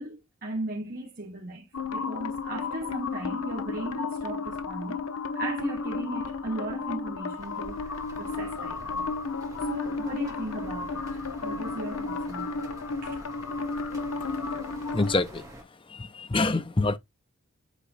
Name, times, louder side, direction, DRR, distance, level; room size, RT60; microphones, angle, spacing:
voice 1, 0.0-1.7 1.9-5.0 5.3-9.1 9.6-12.7 13.0-13.2, right 1 dB, 40° right, 1.5 m, -37 dB
sound 1, 1.7-15.2, left 4 dB, 80° left, 0.8 m, -33 dB
sound 2, 7.4-15.6, right 1 dB, 15° right, 1.7 m, -47 dB
voice 2, 14.9-15.5 15.9-17.0, left 3 dB, 25° left, 0.7 m, -26 dB
8.5 x 3.1 x 4.1 m
head